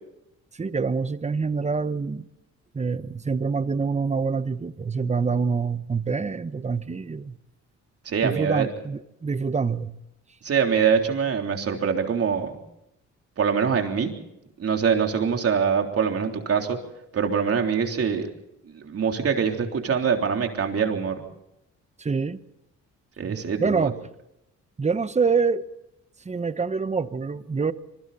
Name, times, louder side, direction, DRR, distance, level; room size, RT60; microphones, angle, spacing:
voice 1, 0.5-2.2 2.7-7.4 8.2-9.9 22.0-22.4 23.2-24.0 24.8-25.6 26.2-27.7, right 5 dB, 25° right, 1.1 m, -26 dB
voice 2, 8.1-8.7 10.4-12.5 13.4-14.1 14.6-16.8 17.1-18.3 18.7-21.2 23.2-23.9, right 6 dB, 50° right, 3.5 m, -24 dB
26.5 x 23.0 x 4.2 m
cardioid pair, 90°, 30 cm